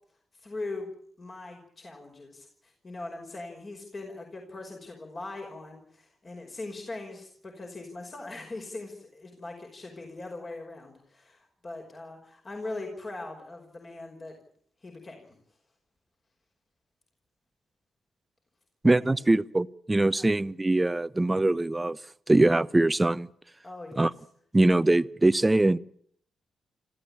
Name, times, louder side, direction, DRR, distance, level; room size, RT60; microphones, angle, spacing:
voice 1, 0.3-0.9 1.2-14.4 14.8-15.4 19.0-19.2 20.1-20.3 23.6-24.1, left 2 dB, 40° left, 5.3 m, -41 dB
voice 2, 18.8-22.0 22.3-23.3 24.0-24.1 24.5-25.8, right 2 dB, 20° right, 0.8 m, -22 dB
26.5 x 14.5 x 8.7 m
supercardioid pair, 50°, 0 cm